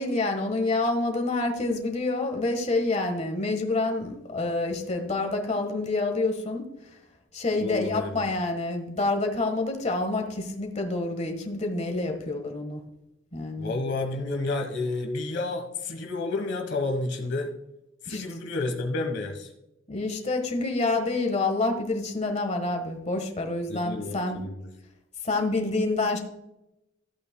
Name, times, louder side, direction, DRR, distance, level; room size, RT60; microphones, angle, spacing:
voice 1, 0.0-6.7 7.3-12.8 13.3-13.7 18.1-18.2 19.9-24.4 25.2-26.2, left 2 dB, 35° left, 4 dB, 1.4 m, -27 dB
voice 2, 7.6-8.3 13.6-17.5 18.0-19.5 23.7-24.7, left 2 dB, 60° left, 3 dB, 1.2 m, -30 dB
13.5 x 8.6 x 2.2 m, 0.89 s
head